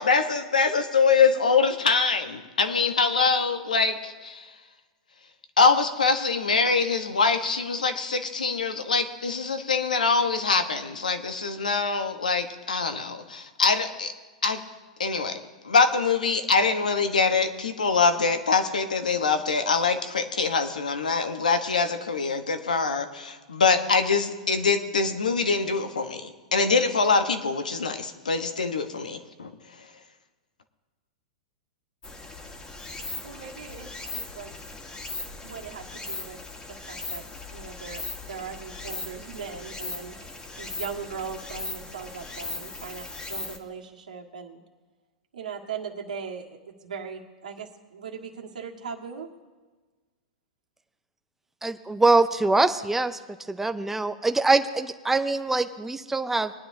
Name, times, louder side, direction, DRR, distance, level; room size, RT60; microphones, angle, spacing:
voice 1, 0.0-4.5 5.6-14.1 14.4-14.6 15.0-29.5, left 4 dB, 90° left, 8 dB, 1.1 m, -24 dB
Stream, 32.0-43.6, left 3 dB, 20° left, 1.6 m, -38 dB
voice 2, 33.2-34.5 35.4-36.4 36.6-37.2 37.5-40.2 40.6-44.6 45.3-49.3, right 6 dB, 80° right, 0 dB, 1.8 m, -39 dB
voice 3, 51.6-53.2 53.5-56.5, right 3 dB, 5° right, 10 dB, 0.7 m, -23 dB
20.5 x 10.0 x 2.8 m, 1.3 s
hypercardioid pair, 110°, 4 cm